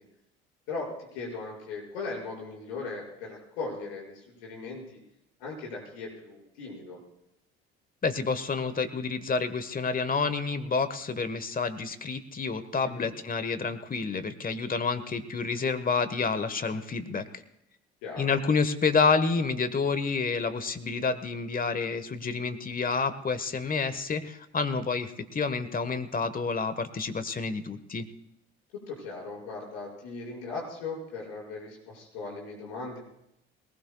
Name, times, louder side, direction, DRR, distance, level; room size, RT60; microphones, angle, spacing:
voice 1, 0.7-5.0 5.4-7.0 12.8-13.1 18.0-18.3 28.7-33.0, left 3 dB, 75° left, -2 dB, 6.2 m, -38 dB
voice 2, 8.0-17.3 18.2-28.1, left 4 dB, 30° left, 12 dB, 1.4 m, -29 dB
22.0 x 19.5 x 2.3 m, 0.84 s
hypercardioid pair, 60°, 31 cm